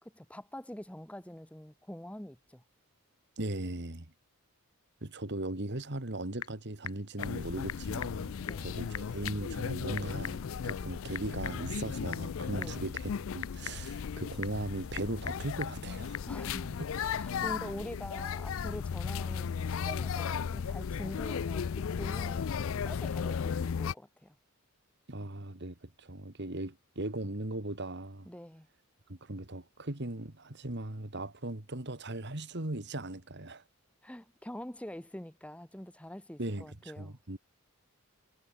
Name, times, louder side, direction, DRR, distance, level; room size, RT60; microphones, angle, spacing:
voice 1, 0.0-2.6 8.4-8.8 12.5-12.8 16.3-24.3 28.3-28.7 34.0-37.2, left 1 dB, 5° left, 1.0 m, -45 dB
voice 2, 3.4-4.1 5.0-16.2 25.1-28.3 29.1-33.6 36.4-37.4, right 1 dB, 50° right, 2.1 m, -38 dB
Typing / Telephone, 5.8-16.3, left 8 dB, 80° left, 3.0 m, -46 dB
sound 1, 7.2-23.9, left 6 dB, 60° left, 0.4 m, -36 dB
head